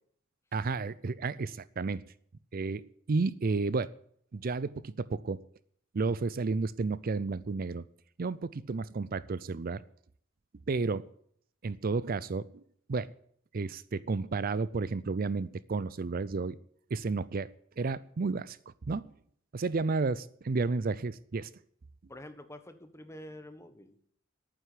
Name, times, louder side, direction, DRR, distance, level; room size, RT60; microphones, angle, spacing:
voice 1, 0.5-2.0 2.5-3.9 4.3-5.4 5.9-7.8 8.2-9.8 10.7-11.1 11.6-12.6 12.9-13.1 13.5-16.6 16.9-17.5 17.8-18.6 18.9-19.1 19.5-21.5, right 4 dB, 50° right, 18 dB, 0.5 m, -32 dB
voice 2, 22.1-24.1, left 1 dB, 15° left, 9 dB, 1.4 m, -47 dB
11.5 x 9.3 x 8.3 m, 0.63 s
head